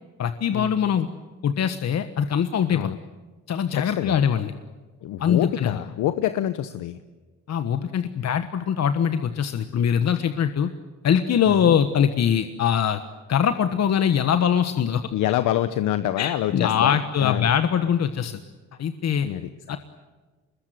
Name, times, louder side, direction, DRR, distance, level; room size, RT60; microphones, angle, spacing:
voice 1, 0.2-1.1 1.4-2.8 3.5-4.5 5.2-5.8 7.5-10.7 11.0-13.0 13.3-15.0 16.2-18.4 18.8-19.3 19.7-19.8, left 8 dB, 60° left, 9 dB, 1.4 m, -22 dB
voice 2, 3.8-4.2 5.0-7.0 11.5-11.8 15.1-17.5 19.2-19.8, left 12 dB, 85° left, 11 dB, 1.1 m, -26 dB
25.0 x 21.5 x 9.2 m, 1.3 s
cardioid pair, 90°, 30 cm